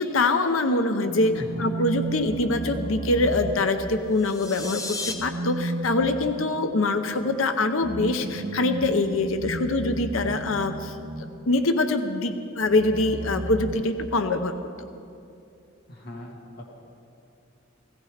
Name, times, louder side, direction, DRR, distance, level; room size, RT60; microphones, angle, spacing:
voice 1, 0.0-11.0 11.5-14.9, left 2 dB, 75° left, 8 dB, 0.8 m, -24 dB
sound 1, 1.0-4.3 5.0-11.6 12.6-14.5, right 2 dB, 45° right, 0.8 m, -34 dB
voice 2, 1.3-1.8 15.9-16.7, left 1 dB, 50° left, -1 dB, 2.1 m, -39 dB
sound 2, 4.1-5.1, left 3 dB, 15° left, 1.1 m, -34 dB
17.0 x 16.5 x 5.0 m, 2.6 s
head